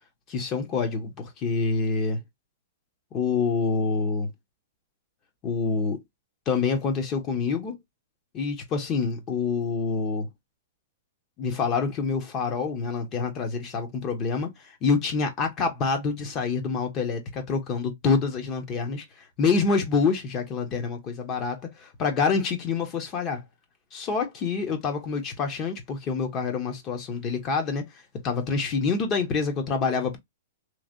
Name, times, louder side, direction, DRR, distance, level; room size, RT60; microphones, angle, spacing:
voice 1, 0.3-2.2 3.1-4.3 5.4-6.0 6.5-7.8 8.3-10.3 11.4-19.0 19.4-23.4 23.9-27.9 28.2-30.2, left 4 dB, 30° left, 1.1 m, -27 dB
3.2 x 2.5 x 2.5 m
hypercardioid pair, 140°, 0 cm